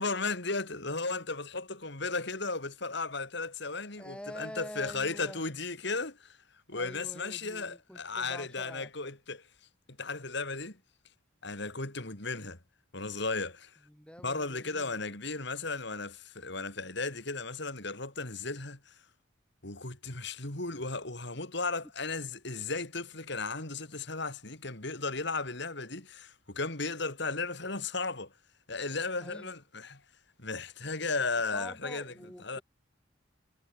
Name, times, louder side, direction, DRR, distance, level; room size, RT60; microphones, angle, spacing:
voice 1, 0.0-6.4 6.7-9.4 10.0-10.8 11.4-12.6 12.9-13.7 14.2-18.9 19.6-28.3 28.7-30.0 30.4-32.1 32.4-32.6, left 3 dB, 60° left, 3.6 m, -35 dB
voice 2, 4.0-5.4 6.7-8.9 13.9-15.0 29.2-29.6 31.2-32.6, equal, 5° left, 6.3 m, -47 dB
head